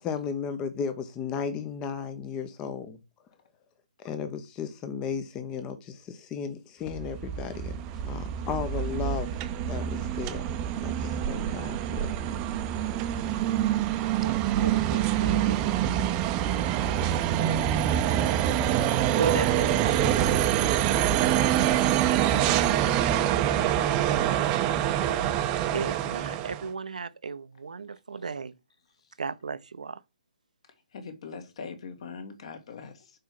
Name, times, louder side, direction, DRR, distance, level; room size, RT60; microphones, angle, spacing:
voice 1, 0.0-3.0 4.0-9.3 9.7-10.5 10.8-12.1 15.8-16.0, left 6 dB, 20° left, 0.8 m, -35 dB
sound 1, 6.9-26.7, right 11 dB, 20° right, 0.7 m, -26 dB
voice 2, 14.2-15.8 19.1-20.3 25.7-28.5 29.2-30.0, right 5 dB, 70° right, 0.7 m, -34 dB
voice 3, 30.9-33.1, left 5 dB, 50° left, 1.9 m, -43 dB
6.6 x 4.7 x 5.9 m
figure-of-eight pair, 135°, 4 cm